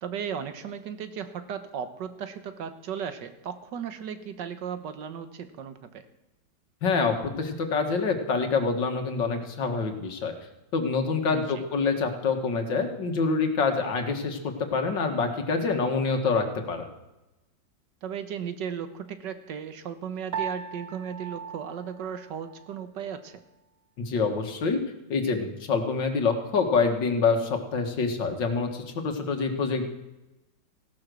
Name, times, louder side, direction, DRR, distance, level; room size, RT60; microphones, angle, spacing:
voice 1, 0.0-6.1 11.3-11.6 18.0-23.4, right 7 dB, 70° right, 10 dB, 1.8 m, -36 dB
voice 2, 6.8-10.3 10.7-16.9 24.0-24.8 25.1-29.9, left 4 dB, 75° left, 5 dB, 2.4 m, -26 dB
Piano, 20.3-22.8, right 7 dB, 45° right, 0.9 m, -38 dB
16.0 x 12.0 x 6.3 m, 0.98 s
omnidirectional pair, 2.0 m